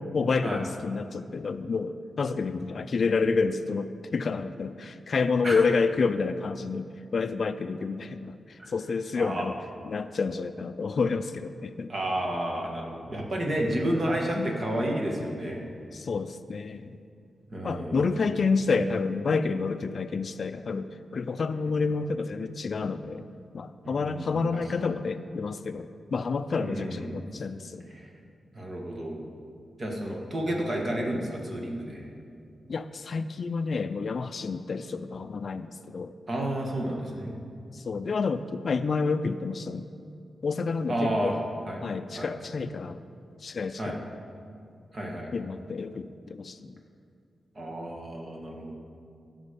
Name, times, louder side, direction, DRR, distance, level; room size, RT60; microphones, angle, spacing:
voice 1, 0.1-9.5 9.9-11.9 14.4-14.5 15.9-16.9 17.6-23.3 23.5-27.9 32.7-36.1 37.7-39.9 40.4-41.4 41.8-43.0 43.4-44.0 45.3-46.7, left 4 dB, 55° left, 11 dB, 0.4 m, -29 dB
voice 2, 9.1-9.5 11.9-15.6 17.5-18.1 21.7-21.8 23.8-24.6 26.6-27.2 27.9-28.1 28.5-29.2 29.8-32.1 36.3-37.4 40.9-41.3 41.7-41.8 42.1-42.3 43.8-44.0 44.9-45.3 47.6-48.8, right 1 dB, 40° right, 0 dB, 1.8 m, -31 dB
16.5 x 6.3 x 5.2 m, 2.4 s
wide cardioid pair, 115°, 0 cm